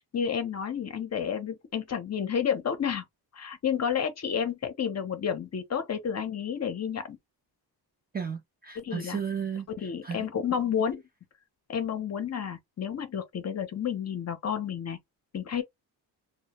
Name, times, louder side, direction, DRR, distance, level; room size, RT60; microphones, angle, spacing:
voice 1, 0.1-3.0 3.3-7.2 8.8-9.2 9.7-11.0 11.7-15.0 15.3-15.6, left 7 dB, 40° left, 0.6 m, -30 dB
voice 2, 8.1-9.7 10.0-10.3, right 7 dB, 25° right, 0.3 m, -34 dB
2.1 x 2.1 x 2.9 m
cardioid pair, 115°, 41 cm